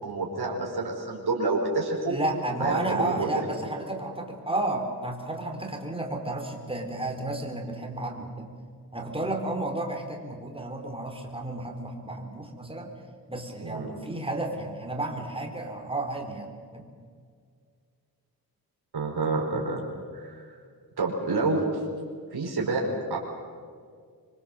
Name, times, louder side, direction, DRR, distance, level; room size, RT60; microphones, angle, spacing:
voice 1, 0.0-2.1 2.6-3.4 13.6-13.9 18.9-19.8 20.1-20.4 21.0-21.6 22.3-22.8 23.1-23.2, right 3 dB, 80° right, -1 dB, 4.9 m, -28 dB
voice 2, 2.1-8.5 8.9-12.9 13.3-16.9, right 2 dB, 15° right, 2 dB, 4.0 m, -32 dB
26.0 x 23.0 x 7.9 m, 2.1 s
wide cardioid pair, 105°, 38 cm